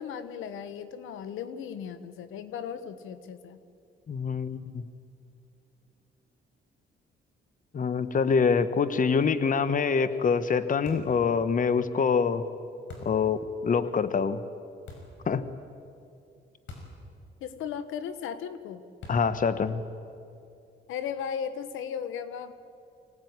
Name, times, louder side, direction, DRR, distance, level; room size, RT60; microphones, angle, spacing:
voice 1, 0.0-3.6 17.4-18.8 20.9-22.5, left 7 dB, 85° left, 12 dB, 1.3 m, -36 dB
voice 2, 4.1-4.9 7.7-12.4 13.0-14.4 15.3-15.4 19.1-19.8, left 5 dB, 40° left, 13 dB, 1.2 m, -25 dB
sound 1, 10.9-11.2 12.9-13.3 14.9-15.2 16.7-17.0 17.3-17.4 19.0-19.4, left 3 dB, 70° left, 5.7 m, -44 dB
25.0 x 17.5 x 9.6 m, 2.5 s
cardioid pair, 90°, 20 cm